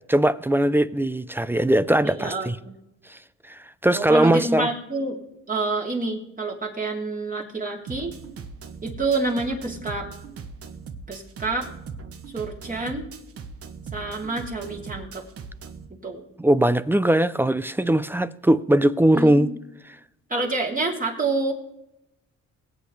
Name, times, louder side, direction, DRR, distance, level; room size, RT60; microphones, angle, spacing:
voice 1, 0.1-2.6 3.1-3.2 3.5-4.7 16.4-19.5, right 1 dB, 5° right, 0.5 m, -20 dB
voice 2, 2.0-2.7 3.9-5.2 5.5-8.1 8.8-10.1 11.1-11.7 12.3-13.1 13.9-15.2 16.0-16.3 19.1-19.6 20.3-21.5, right 3 dB, 25° right, 3.1 m, -28 dB
sound 1, 7.9-15.9, right 5 dB, 50° right, 1.2 m, -39 dB
20.5 x 8.5 x 3.2 m
cardioid pair, 90°, 30 cm